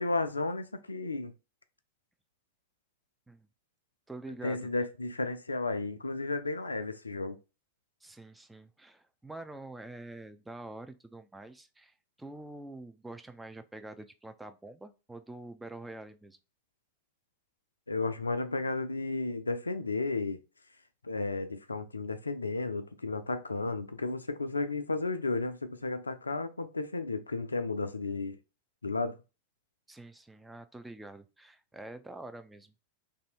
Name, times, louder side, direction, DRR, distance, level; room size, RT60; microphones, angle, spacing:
voice 1, 0.0-1.3 4.4-7.4 17.9-20.4 21.0-28.4 28.8-29.2, left 3 dB, 80° left, 0.4 m, -33 dB
voice 2, 4.1-4.7 8.0-16.4 29.9-32.8, right 2 dB, 5° right, 0.4 m, -46 dB
3.3 x 2.7 x 4.4 m
figure-of-eight pair, 90°, 0 cm